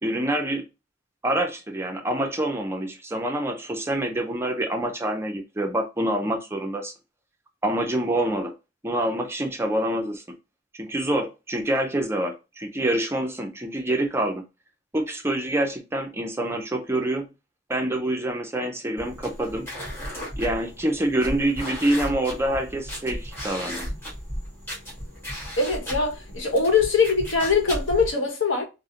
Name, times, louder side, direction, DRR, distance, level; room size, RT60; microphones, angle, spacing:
voice 1, 0.0-0.6 1.2-6.9 7.6-8.5 8.8-10.4 10.7-14.4 14.9-17.3 17.7-19.7 20.4-23.9, right 1 dB, 15° right, 0.4 m, -26 dB
sound 1, 19.0-28.1, equal, 10° left, 1.4 m, -35 dB
voice 2, 25.6-28.6, left 4 dB, 70° left, 1.0 m, -22 dB
3.7 x 2.0 x 2.7 m
head